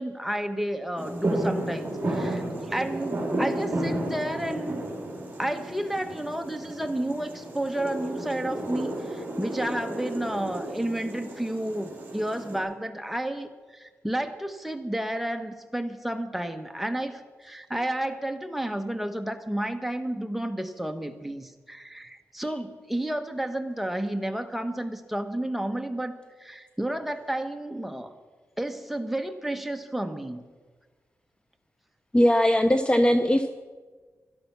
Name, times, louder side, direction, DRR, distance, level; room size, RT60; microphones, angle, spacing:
voice 1, 0.0-4.8 5.4-28.1 28.6-30.4, right 1 dB, 5° right, 6 dB, 1.3 m, -31 dB
sound 1, 1.0-12.6, right 1 dB, 30° right, 4.5 m, -32 dB
voice 2, 32.1-33.5, equal, 20° left, 8 dB, 0.7 m, -20 dB
17.0 x 12.5 x 6.0 m, 1.4 s
cardioid pair, 90°, 5 cm